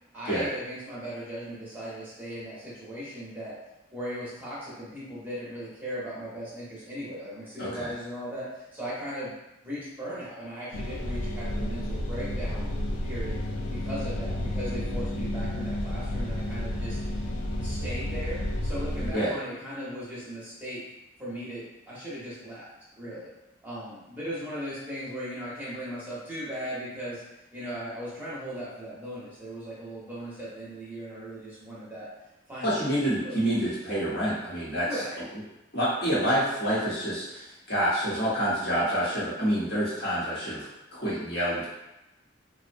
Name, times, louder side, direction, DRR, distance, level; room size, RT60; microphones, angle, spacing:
voice 1, 0.1-3.6 3.9-9.3 9.6-12.7 13.0-17.0 17.6-20.8 21.2-22.7 23.0-23.3 23.6-27.2 27.5-32.1 32.5-32.8 33.2-33.4 34.7-35.2, equal, 10° right, -9 dB, 0.7 m, -38 dB
voice 2, 7.6-7.9 19.1-19.4 32.6-34.9 35.7-41.7, equal, 55° left, -8 dB, 0.9 m, -27 dB
sound 1, 10.7-19.1, left 1 dB, 85° left, 0.4 m, -31 dB
2.6 x 2.0 x 2.5 m, 0.96 s
head